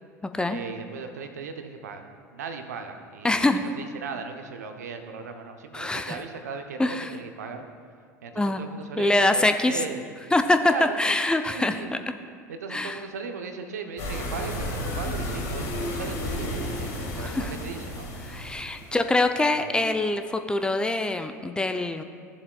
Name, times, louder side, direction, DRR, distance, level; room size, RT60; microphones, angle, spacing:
voice 1, 0.5-2.0 2.3-7.7 8.2-10.0 10.7-11.0 11.5-11.9 12.5-18.1 19.5-19.7, right 5 dB, 75° right, 6 dB, 0.8 m, -37 dB
voice 2, 3.2-3.6 5.7-6.2 6.8-7.1 8.3-8.6 9.0-9.8 10.3-11.8 12.7-13.0 17.2-17.5 18.3-22.0, left 2 dB, 10° left, 7 dB, 0.4 m, -24 dB
sound 1, 14.0-18.9, left 1 dB, 60° left, 1.9 m, -32 dB
15.5 x 7.3 x 2.3 m, 2.1 s
figure-of-eight pair, 75°, 9 cm